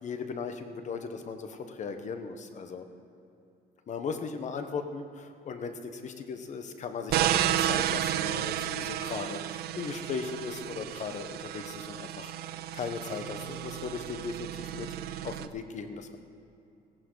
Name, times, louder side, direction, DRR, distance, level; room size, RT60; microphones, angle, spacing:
voice 1, 0.0-2.9 3.9-12.3 12.7-15.0 15.2-16.2, left 5 dB, 45° left, 8 dB, 1.1 m, -37 dB
sound 1, 7.1-15.5, right 12 dB, 70° right, 0.6 m, -32 dB
17.0 x 11.5 x 4.0 m, 2.7 s
cardioid pair, 110°, 17 cm